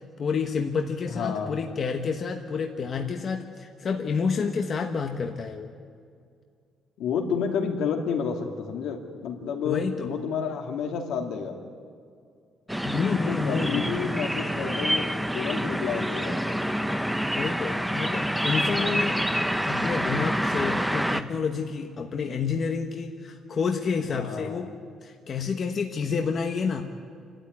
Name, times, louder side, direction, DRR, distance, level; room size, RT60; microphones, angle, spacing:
voice 1, 0.2-5.7 9.6-9.9 12.8-13.8 17.3-19.2 19.6-24.7 25.0-26.8, left 5 dB, 35° left, 3 dB, 1.1 m, -29 dB
voice 2, 1.1-1.6 7.0-11.6 13.0-16.4 24.1-24.7, left 6 dB, 75° left, 2 dB, 2.7 m, -30 dB
sound 1, 12.7-21.2, equal, ahead, 0.7 m, -27 dB
28.5 x 13.0 x 9.6 m, 2.2 s
cardioid pair, 175°, 0 cm